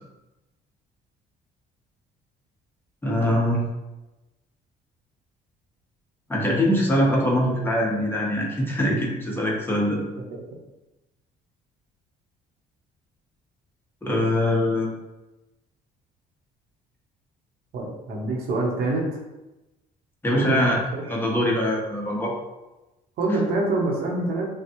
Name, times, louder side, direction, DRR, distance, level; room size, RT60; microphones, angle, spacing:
voice 1, 3.0-3.6 6.3-10.0 14.0-14.9 20.2-20.8 21.1-22.3, left 1 dB, 15° left, -3 dB, 1.1 m, -23 dB
voice 2, 17.7-19.2 20.3-21.0 23.2-24.5, right 2 dB, 70° right, -1 dB, 1.0 m, -26 dB
5.5 x 2.3 x 3.0 m, 1.0 s
cardioid pair, 110°, 17 cm